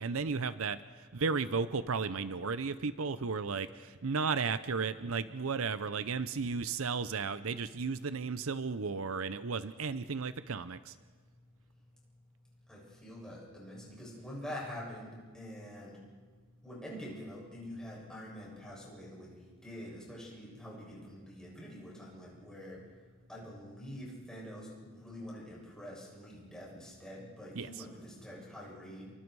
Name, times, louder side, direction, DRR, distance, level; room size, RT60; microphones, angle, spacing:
voice 1, 0.0-11.0 27.6-27.8, right 5 dB, 70° right, 13 dB, 0.7 m, -34 dB
voice 2, 12.7-16.0 16.6-22.8 23.3-29.1, equal, 5° left, -5 dB, 7.8 m, -46 dB
29.5 x 23.5 x 4.8 m, 1.5 s
head